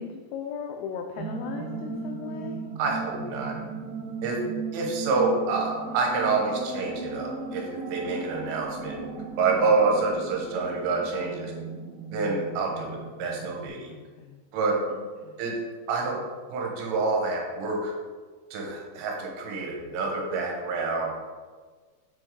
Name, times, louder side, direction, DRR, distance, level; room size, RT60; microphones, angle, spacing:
voice 1, 0.0-2.6 4.3-4.9 13.9-14.4 14.9-15.4, left 6 dB, 90° left, 3 dB, 2.5 m, -38 dB
sound 1, 1.1-13.7, right 4 dB, 60° right, 3.5 m, -37 dB
voice 2, 2.8-3.5 4.2-4.4 4.7-7.6 7.9-9.0 9.4-11.5 12.1-13.9 14.5-14.8 15.4-15.6 15.9-16.2 16.5-17.9 18.5-21.1, right 3 dB, 80° right, 0 dB, 3.6 m, -27 dB
8.1 x 6.0 x 3.8 m, 1.4 s
omnidirectional pair, 5.8 m